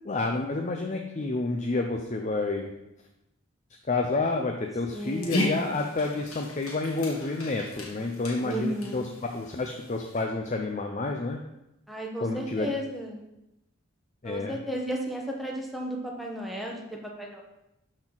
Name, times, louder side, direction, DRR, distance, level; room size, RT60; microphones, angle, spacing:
voice 1, 0.1-2.7 3.9-9.0 9.3-11.4 12.2-12.7 14.2-14.6, left 3 dB, 35° left, 3 dB, 0.5 m, -29 dB
Dog, 4.9-10.2, left 1 dB, 80° left, 1.6 m, -36 dB
voice 2, 4.9-5.6 8.4-9.1 11.9-13.2 14.2-17.4, right 1 dB, ahead, -2 dB, 1.1 m, -34 dB
12.0 x 4.4 x 3.9 m, 0.89 s
head